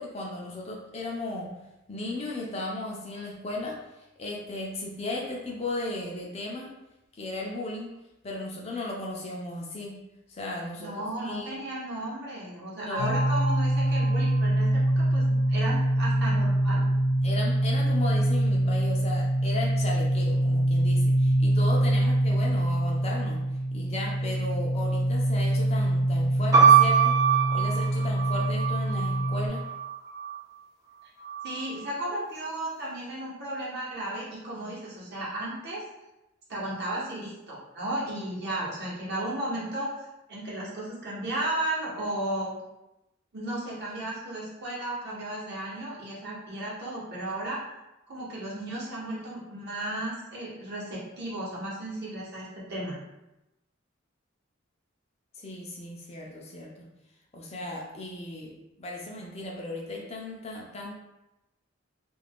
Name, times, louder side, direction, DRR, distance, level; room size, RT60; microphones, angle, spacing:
voice 1, 0.0-1.5 1.9-3.8 4.2-6.7 7.1-7.9 8.2-10.0 10.3-11.5 12.8-13.2 17.2-23.4 23.7-27.2 27.5-29.6 55.3-56.9 57.3-58.5 58.8-60.9, left 2 dB, 30° left, -2 dB, 0.4 m, -35 dB
voice 2, 10.8-16.9 31.4-35.8 36.5-42.6 43.3-47.6 48.1-53.0, right 1 dB, 55° right, -6 dB, 0.9 m, -34 dB
sound 1, 13.0-29.5, right 1 dB, 80° left, 0.7 m, -25 dB
sound 2, 26.5-30.4 31.2-31.9, right 7 dB, 20° right, 0.6 m, -23 dB
2.4 x 2.2 x 3.4 m, 0.94 s
head